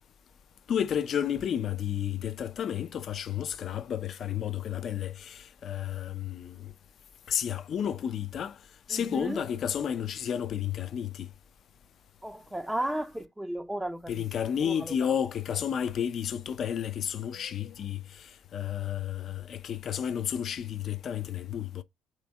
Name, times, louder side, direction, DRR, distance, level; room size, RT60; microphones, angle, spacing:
voice 1, 0.7-6.7 7.3-8.6 8.9-11.3 14.1-21.8, left 9 dB, 50° left, 0.4 m, -32 dB
voice 2, 8.9-9.4 12.2-14.3 14.6-15.1, right 1 dB, 5° right, 0.4 m, -34 dB
3.3 x 3.1 x 4.7 m
figure-of-eight pair, 50°, 0 cm